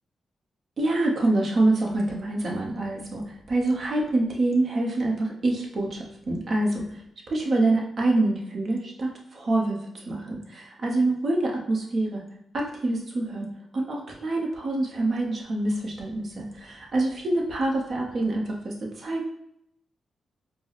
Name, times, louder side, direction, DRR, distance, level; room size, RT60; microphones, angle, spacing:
voice 1, 0.8-6.9 7.3-9.8 10.1-12.2 12.5-19.3, right 2 dB, 60° right, -1 dB, 0.9 m, -26 dB
4.4 x 2.1 x 3.0 m, 0.74 s
cardioid pair, 75°, 0 cm